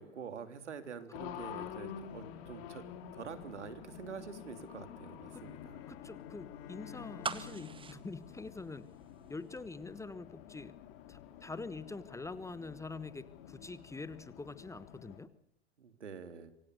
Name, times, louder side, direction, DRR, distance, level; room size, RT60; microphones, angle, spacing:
voice 1, 0.0-2.8 3.1-5.8 15.8-16.5, right 6 dB, 80° right, 9 dB, 3.5 m, -46 dB
Race car auto racing, 1.1-15.2, left 9 dB, 55° left, 3.7 m, -49 dB
Bowed string instrument, 5.3-9.5, left 8 dB, 35° left, 2.2 m, -54 dB
voice 2, 5.9-8.9 9.3-10.7 11.1-15.3, left 3 dB, 10° left, 15 dB, 1.3 m, -45 dB
sound 1, 7.2-9.3 9.6-9.7, right 5 dB, 15° right, 1.5 m, -41 dB
27.0 x 24.5 x 6.7 m, 0.64 s
hypercardioid pair, 100°, 35 cm